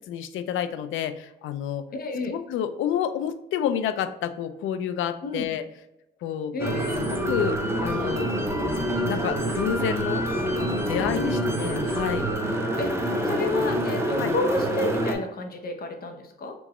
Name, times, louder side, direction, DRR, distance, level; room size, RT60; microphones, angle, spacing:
voice 1, 0.1-1.9 2.3-5.6 6.2-6.6 7.1-8.3 9.0-10.3 10.6-12.3 14.2-14.4, left 9 dB, 80° left, 10 dB, 0.4 m, -29 dB
voice 2, 1.9-2.3 5.2-5.5 6.5-7.0 11.1-11.3 12.8-12.9 13.2-16.5, left 2 dB, 50° left, 4 dB, 0.8 m, -30 dB
sound 1, 6.6-15.1, right 1 dB, 15° right, 0.7 m, -26 dB
3.4 x 3.0 x 2.9 m, 0.90 s
cardioid pair, 90°, 20 cm